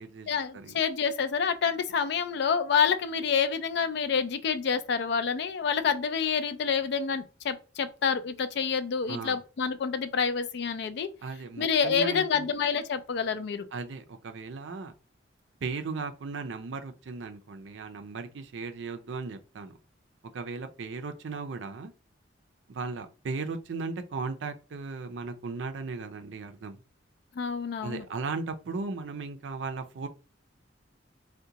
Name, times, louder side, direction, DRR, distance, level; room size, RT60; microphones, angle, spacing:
voice 1, 0.3-11.1 11.6-13.7 27.4-28.0, left 6 dB, 60° left, 0.4 m, -28 dB
voice 2, 9.1-9.4 11.2-12.5 13.7-14.9 15.6-19.8 20.3-21.9 22.7-26.8 27.8-30.1, right 4 dB, 70° right, 0.4 m, -36 dB
3.7 x 2.2 x 2.8 m
head